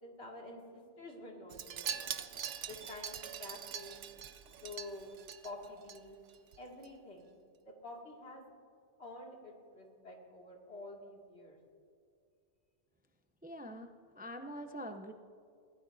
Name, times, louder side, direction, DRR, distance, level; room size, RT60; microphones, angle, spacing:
voice 1, 0.0-2.3 2.6-4.1 4.3-5.1 5.4-6.2 6.6-8.5 9.0-11.6, left 2 dB, 65° left, -1 dB, 2.6 m, -49 dB
Wind chime, 1.5-6.0 6.3-6.6 6.8-6.9, right 8 dB, 85° right, 1.1 m, -43 dB
voice 2, 13.4-13.9 14.1-15.1, equal, 10° right, 6 dB, 0.5 m, -44 dB
29.5 x 16.0 x 2.7 m, 2.4 s
omnidirectional pair, 1.2 m